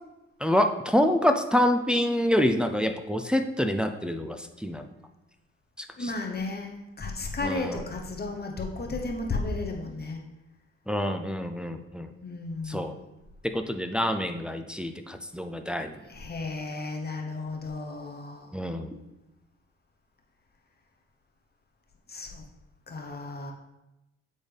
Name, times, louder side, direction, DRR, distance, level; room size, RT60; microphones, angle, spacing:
voice 1, 0.4-4.9 5.8-6.1 7.4-7.8 10.9-12.1 12.7-13.0 13.4-16.0 18.5-19.0, left 1 dB, 5° right, 6 dB, 0.4 m, -27 dB
voice 2, 6.0-10.2 12.2-13.0 16.1-18.5 22.1-22.4 22.9-23.5, left 3 dB, 30° left, 1 dB, 1.1 m, -34 dB
8.9 x 4.1 x 3.4 m, 0.97 s
cardioid pair, 90°, 30 cm